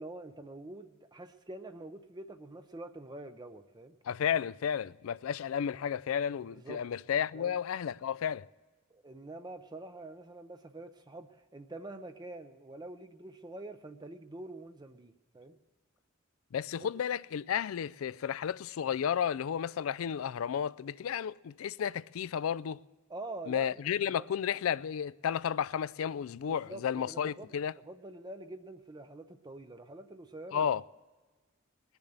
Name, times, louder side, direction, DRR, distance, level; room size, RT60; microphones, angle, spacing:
voice 1, 0.0-4.0 6.5-6.8 7.3-7.6 8.9-15.6 16.8-16.9 23.1-23.7 24.0-24.3 26.4-27.6 27.8-30.7, right 2 dB, 20° right, 0.5 m, -46 dB
voice 2, 4.0-8.5 16.5-22.8 23.5-27.7 30.5-30.8, left 8 dB, 85° left, 0.4 m, -32 dB
20.0 x 7.1 x 7.9 m
head